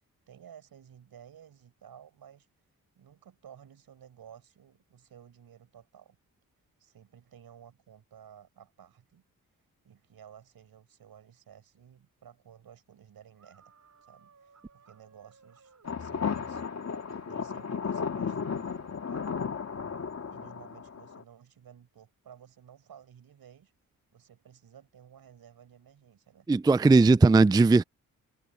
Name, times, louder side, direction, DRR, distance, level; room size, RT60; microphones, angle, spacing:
voice 1, 0.3-2.5 2.9-6.2 6.8-9.2 9.8-13.7 14.0-16.6 17.2-19.3 20.3-23.7 24.1-26.5, right 9 dB, 75° right, 5.7 m, -54 dB
sound 1, 13.3-15.9 17.1-17.7 18.3-18.5, right 5 dB, 50° right, 7.0 m, -60 dB
sound 2, 15.8-21.2, left 6 dB, 45° left, 2.0 m, -34 dB
voice 2, 26.5-27.8, right 3 dB, 10° right, 0.4 m, -18 dB
cardioid pair, 55°, 37 cm